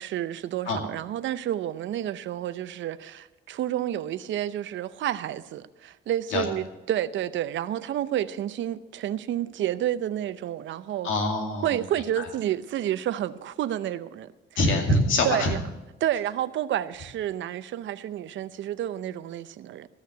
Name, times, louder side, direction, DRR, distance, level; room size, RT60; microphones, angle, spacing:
voice 1, 0.0-11.1 11.6-14.3 15.2-15.6 16.0-19.9, right 11 dB, 70° right, 0.6 m, -30 dB
voice 2, 11.0-11.8 12.2-12.3 14.6-15.5, left 2 dB, 80° left, 2.4 m, -24 dB
14.0 x 6.6 x 8.2 m
cardioid pair, 90°, 20 cm